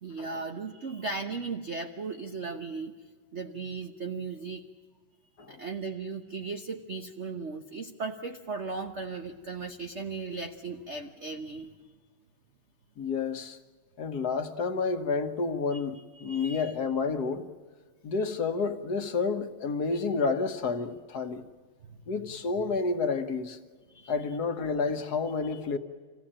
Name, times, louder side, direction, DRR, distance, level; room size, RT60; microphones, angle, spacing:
voice 1, 0.0-2.9 3.3-4.6 5.5-11.7 15.7-16.7 21.9-22.1 23.9-24.1 25.5-25.6, right 4 dB, 45° right, 1.0 m, -37 dB
voice 2, 13.0-13.6 14.0-17.5 18.0-21.4 22.1-23.6 24.1-25.8, left 4 dB, 50° left, 1.5 m, -30 dB
26.0 x 16.5 x 8.8 m
omnidirectional pair, 2.4 m